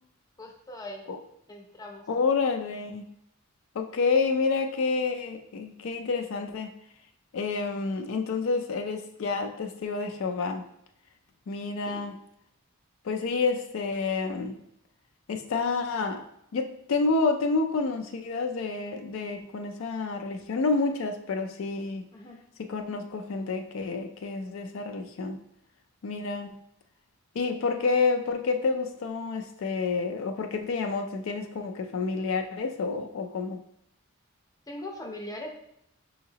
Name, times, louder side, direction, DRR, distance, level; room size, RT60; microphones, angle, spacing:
voice 1, 0.4-1.0 1.5-2.1 11.9-12.1 22.1-22.4 34.7-35.5, left 1 dB, 15° left, 1 dB, 0.6 m, -40 dB
voice 2, 2.1-3.1 3.8-6.7 7.3-10.6 11.5-12.2 13.0-14.5 15.3-16.2 16.5-22.1 22.6-25.4 26.0-26.6 27.4-33.6, left 4 dB, 65° left, 5 dB, 0.3 m, -29 dB
5.6 x 2.8 x 2.8 m, 0.76 s
head